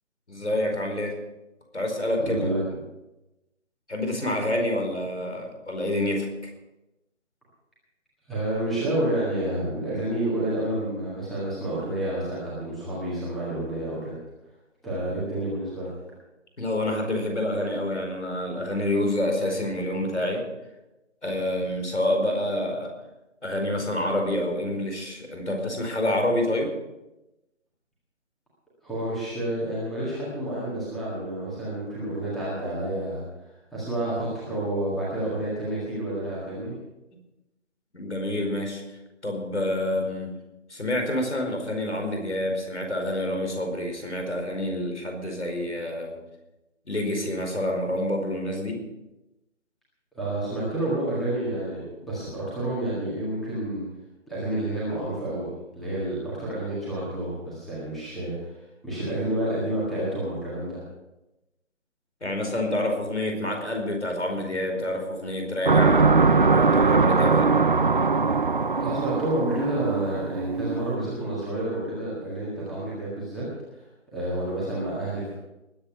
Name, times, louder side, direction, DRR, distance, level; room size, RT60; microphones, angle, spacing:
voice 1, 0.3-1.2 1.7-2.5 3.9-6.5 16.6-20.4 21.2-22.9 23.4-26.7 37.9-38.8 39.2-40.3 40.7-46.2 46.9-48.8 62.2-66.1 66.4-67.6, left 1 dB, 65° left, 3 dB, 4.9 m, -27 dB
voice 2, 2.1-2.6 8.3-14.1 14.8-15.9 28.8-33.2 33.7-36.7 50.2-53.8 54.3-55.5 55.7-60.8 68.8-73.8 74.1-75.3, right 1 dB, ahead, -9 dB, 1.7 m, -29 dB
sound 1, 65.7-70.9, right 4 dB, 45° right, 0.6 m, -21 dB
20.5 x 8.6 x 5.7 m, 0.98 s
figure-of-eight pair, 155°, 37 cm